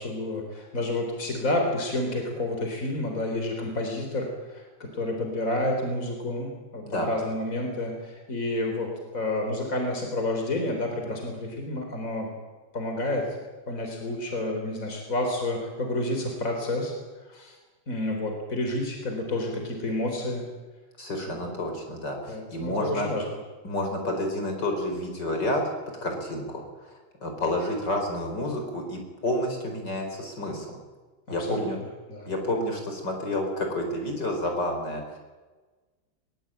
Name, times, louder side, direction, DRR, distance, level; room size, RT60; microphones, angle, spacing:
voice 1, 0.0-12.3 12.7-13.3 13.7-16.9 17.3-17.6 17.9-20.4 21.2-21.5 22.3-23.2 31.4-31.7 32.1-32.3, left 1 dB, 45° left, 3 dB, 4.5 m, -30 dB
voice 2, 21.0-23.1 23.6-25.6 26.0-26.9 27.2-30.8 31.3-31.8 32.3-35.2, left 1 dB, 65° left, 3 dB, 5.4 m, -30 dB
22.0 x 21.5 x 9.1 m, 1.3 s
omnidirectional pair, 2.0 m